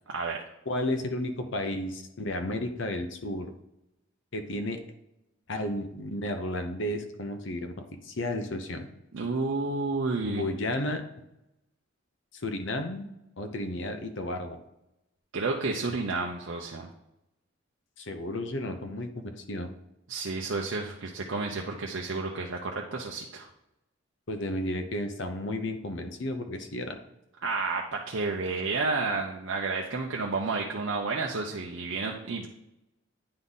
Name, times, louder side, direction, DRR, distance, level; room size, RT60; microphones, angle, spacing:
voice 1, 0.1-0.4 9.1-10.4 15.3-16.9 20.1-23.5 27.4-32.5, right 3 dB, 65° right, 0 dB, 0.6 m, -31 dB
voice 2, 0.7-3.5 4.3-4.8 5.5-8.9 10.3-11.0 12.3-13.1 13.4-14.6 18.0-19.7 24.3-27.0, left 1 dB, 65° left, 6 dB, 0.8 m, -33 dB
9.6 x 3.7 x 4.0 m, 0.88 s
head